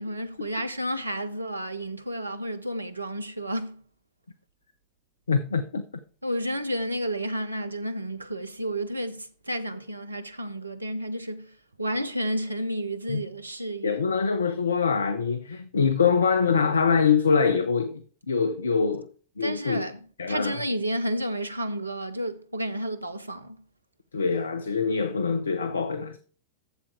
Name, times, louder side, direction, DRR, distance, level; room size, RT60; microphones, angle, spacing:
voice 1, 0.0-3.8 6.2-14.0 19.4-20.0 20.3-23.6, equal, 80° right, 0.7 m, -31 dB
voice 2, 5.3-5.8 13.1-13.2 13.8-19.1 19.4-19.8 20.2-20.6 24.1-26.2, left 5 dB, 75° left, 0.6 m, -24 dB
8.2 x 7.4 x 4.8 m
figure-of-eight pair, 90°, 0 cm